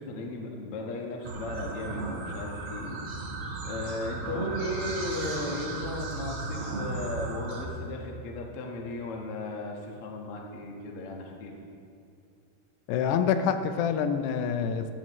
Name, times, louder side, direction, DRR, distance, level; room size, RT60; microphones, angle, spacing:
voice 1, 0.0-3.0 3.6-11.6, left 2 dB, 55° left, 0 dB, 1.6 m, -36 dB
sound 1, 1.2-7.6, right 3 dB, 70° right, 1.2 m, -35 dB
voice 2, 12.9-14.9, left 7 dB, 85° left, 8 dB, 2.8 m, -26 dB
16.0 x 14.5 x 3.2 m, 2.4 s
omnidirectional pair, 4.7 m